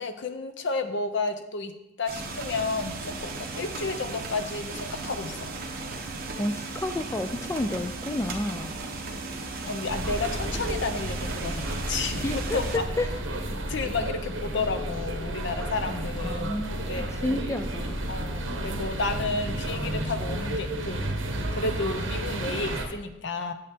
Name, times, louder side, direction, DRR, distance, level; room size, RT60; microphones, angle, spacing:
voice 1, 0.0-1.7 2.0-5.5 9.6-12.7 13.7-17.1 18.1-21.2 21.5-23.5, left 3 dB, 60° left, 8 dB, 0.7 m, -31 dB
sound 1, 2.1-12.8, right 3 dB, 50° right, 1.2 m, -36 dB
voice 2, 6.4-8.7 12.2-12.6 13.0-13.1 15.9-16.0 16.3-16.9 17.2-18.0, left 1 dB, 15° left, 8 dB, 0.3 m, -30 dB
sound 2, 9.9-22.9, right 1 dB, 70° right, 1.2 m, -32 dB
8.5 x 7.8 x 3.5 m, 0.87 s
head